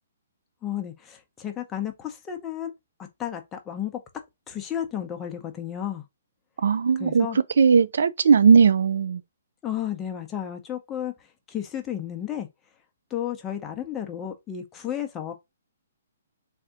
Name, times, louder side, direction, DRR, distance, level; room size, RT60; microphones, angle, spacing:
voice 1, 0.6-2.7 3.2-3.9 4.5-6.0 7.0-7.4 9.6-11.1 11.5-12.5 13.1-15.3, left 10 dB, 15° left, 0.7 m, -32 dB
voice 2, 6.6-7.3 7.6-9.2, right 6 dB, 70° right, 0.3 m, -18 dB
3.4 x 2.6 x 3.5 m
hypercardioid pair, 150°, 0 cm